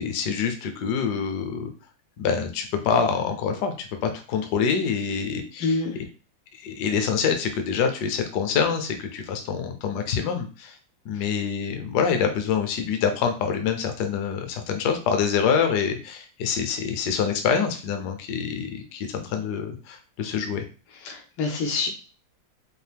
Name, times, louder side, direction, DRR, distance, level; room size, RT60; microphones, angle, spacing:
voice 1, 0.0-1.7 2.2-5.8 6.5-10.8 11.0-20.6, left 6 dB, 65° left, 6 dB, 1.1 m, -26 dB
voice 2, 5.6-6.0 11.1-11.2 21.0-21.9, left 3 dB, 80° left, 3 dB, 1.7 m, -26 dB
4.6 x 2.5 x 3.4 m, 0.35 s
omnidirectional pair, 2.3 m